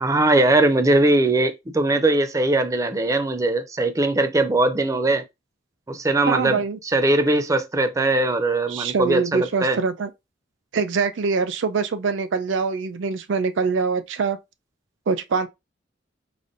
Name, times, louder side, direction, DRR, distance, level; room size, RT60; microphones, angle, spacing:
voice 1, 0.0-5.2 5.9-6.6 6.9-9.8, right 2 dB, 15° right, 0.4 m, -20 dB
voice 2, 6.3-6.8 8.7-10.1 10.7-14.4 15.1-15.5, right 5 dB, 80° right, 0.4 m, -24 dB
4.9 x 2.5 x 2.6 m
head